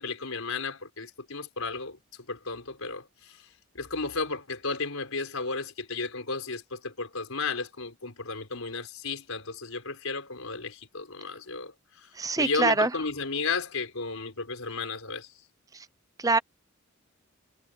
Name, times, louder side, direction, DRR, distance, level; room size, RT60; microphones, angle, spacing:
voice 1, 0.0-2.0 2.3-3.4 3.7-12.1 12.4-15.3, left 4 dB, 90° left, 4.4 m, -34 dB
voice 2, 12.2-12.9 16.2-16.4, right 3 dB, 15° right, 0.6 m, -24 dB
head